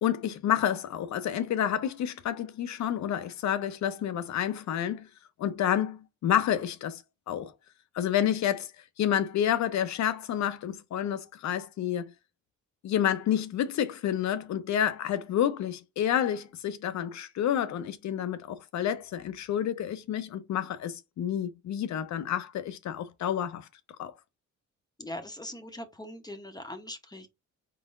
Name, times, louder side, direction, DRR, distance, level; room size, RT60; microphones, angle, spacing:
voice 1, 0.0-5.1 5.4-7.5 7.9-8.7 9.0-12.1 12.8-23.7 24.0-24.1, left 10 dB, 65° left, 0.7 m, -29 dB
voice 2, 25.0-27.3, left 1 dB, 15° left, 0.8 m, -41 dB
4.2 x 3.8 x 2.5 m
cardioid pair, 90°, 30 cm